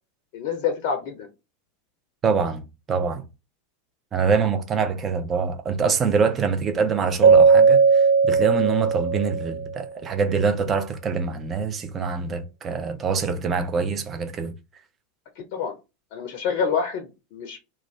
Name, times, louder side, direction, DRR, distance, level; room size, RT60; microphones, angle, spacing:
voice 1, 0.3-1.3 15.4-15.8 16.1-17.6, left 6 dB, 55° left, 0.5 m, -27 dB
voice 2, 2.2-2.6 2.9-3.2 4.1-14.5, right 5 dB, 30° right, 0.5 m, -24 dB
Keyboard (musical), 7.2-9.7, right 5 dB, 60° right, 1.1 m, -17 dB
2.4 x 2.2 x 3.2 m
figure-of-eight pair, 85°, 0 cm